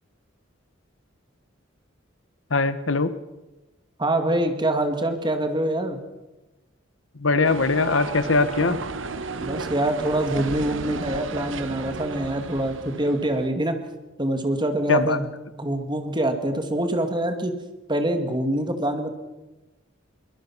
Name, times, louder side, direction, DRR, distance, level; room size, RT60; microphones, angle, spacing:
voice 1, 2.5-3.1 7.1-8.8 14.9-15.2, left 3 dB, 70° left, 13 dB, 1.1 m, -21 dB
voice 2, 4.0-6.0 9.4-13.8 14.2-15.3 15.6-17.5 17.9-19.1, right 1 dB, 25° right, 7 dB, 2.2 m, -25 dB
sound 1, 7.4-13.5, right 3 dB, 70° right, 1.2 m, -34 dB
23.0 x 20.5 x 6.1 m, 1.1 s
head